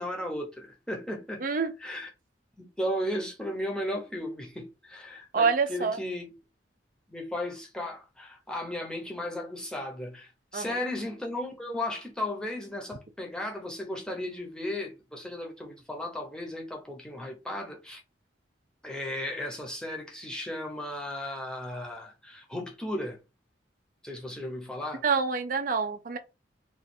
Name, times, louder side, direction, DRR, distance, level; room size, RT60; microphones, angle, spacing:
voice 1, 0.0-1.4 1.8-2.1 2.6-6.3 7.1-18.0 18.8-23.2 24.0-25.0, left 1 dB, 5° left, 0.8 m, -35 dB
voice 2, 5.3-6.0 10.5-10.8 25.0-26.2, right 5 dB, 45° right, 0.5 m, -26 dB
3.0 x 2.4 x 4.3 m
head